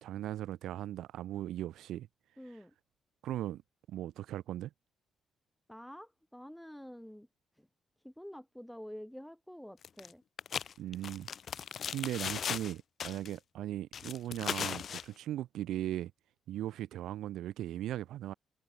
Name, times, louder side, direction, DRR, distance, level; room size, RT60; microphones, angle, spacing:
voice 1, 0.0-2.1 3.2-3.6 3.9-4.7 10.8-11.3 11.9-16.1 16.5-18.3, right 13 dB, 80° right, 1.1 m, -38 dB
voice 2, 2.4-2.7 5.7-7.3 7.6-7.7 8.0-10.2, equal, 5° left, 2.2 m, -48 dB
sound 1, 9.8-10.1 10.4-12.7 13.0-13.3 13.9-15.0, left 8 dB, 55° left, 0.6 m, -37 dB
cardioid pair, 90°, 0 cm